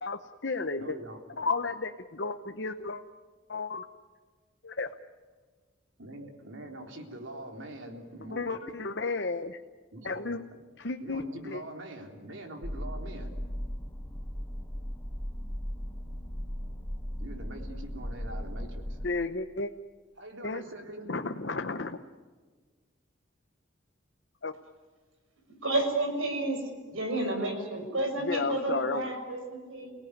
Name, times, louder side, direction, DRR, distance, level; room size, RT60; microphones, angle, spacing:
voice 1, 0.0-1.0 1.4-3.0 3.5-3.8 4.6-4.9 8.3-9.6 10.0-10.4 10.8-11.6 19.0-19.7 20.4-20.6 21.1-22.0 24.4-24.5 28.2-29.1, left 3 dB, 55° left, 6 dB, 0.9 m, -33 dB
voice 2, 0.8-1.2 6.0-8.8 9.9-10.3 11.0-13.3 17.2-19.0 20.2-21.2, right 1 dB, 70° right, 2 dB, 3.7 m, -43 dB
sound 1, 12.6-19.1, equal, 10° left, 1.0 m, -37 dB
voice 3, 25.6-26.6 26.9-29.9, right 2 dB, 90° right, 5 dB, 6.2 m, -30 dB
29.5 x 18.0 x 9.7 m, 1.4 s
head